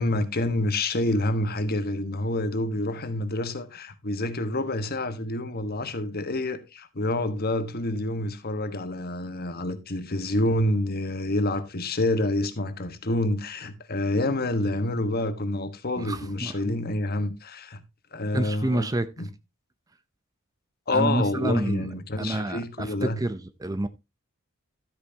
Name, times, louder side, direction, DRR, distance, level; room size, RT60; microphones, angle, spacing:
voice 1, 0.0-17.8 18.1-18.9 19.2-19.3 20.9-23.2, left 1 dB, 45° left, 1.3 m, -28 dB
voice 2, 16.0-16.8 18.3-19.1 20.9-21.9 22.2-23.9, right 1 dB, 15° right, 0.5 m, -28 dB
12.5 x 8.8 x 2.8 m
head